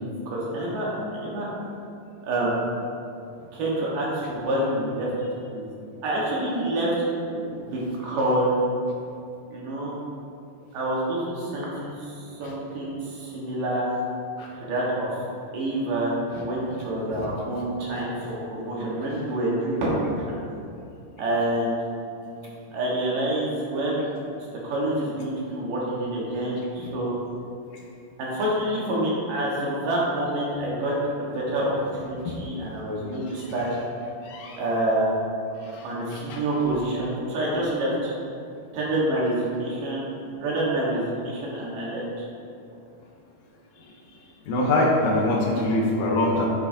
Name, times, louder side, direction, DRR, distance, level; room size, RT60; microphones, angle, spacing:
voice 1, 0.0-1.5 2.2-2.6 3.5-5.1 5.5-5.6 6.0-6.9 7.6-8.7 9.5-9.9 10.7-13.8 14.5-15.2 15.5-20.4 21.2-21.8 22.7-24.0 24.6-27.1 28.2-30.9 31.2-31.7 32.0-33.7 34.6-35.1 35.8-38.1 38.7-40.1 40.4-42.0, right 1 dB, 85° right, -5 dB, 3.2 m, -27 dB
voice 2, 34.3-34.6 35.7-35.8 36.3-36.4 44.5-46.5, left 1 dB, 70° left, -1 dB, 2.1 m, -23 dB
10.0 x 6.5 x 2.8 m, 2.6 s
omnidirectional pair, 3.7 m